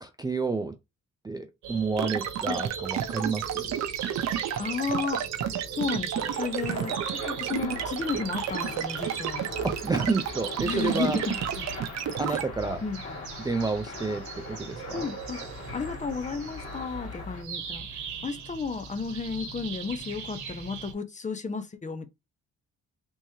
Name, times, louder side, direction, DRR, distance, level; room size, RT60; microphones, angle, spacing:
voice 1, 0.0-0.8 1.2-3.7 9.6-11.2 11.6-11.7 12.2-12.8 13.4-15.1, right 3 dB, 15° right, 0.4 m, -30 dB
sound 1, 1.6-20.9, right 6 dB, 75° right, 1.0 m, -40 dB
sound 2, 2.0-12.4, right 10 dB, 60° right, 0.6 m, -31 dB
voice 2, 4.6-9.4 10.6-11.3 12.3-12.4 12.8-13.0 14.9-15.4 15.7-17.9 18.2-22.1, left 5 dB, 25° left, 0.6 m, -33 dB
sound 3, 6.1-17.4, left 4 dB, 50° left, 2.0 m, -42 dB
3.5 x 2.9 x 2.8 m
cardioid pair, 90°, 30 cm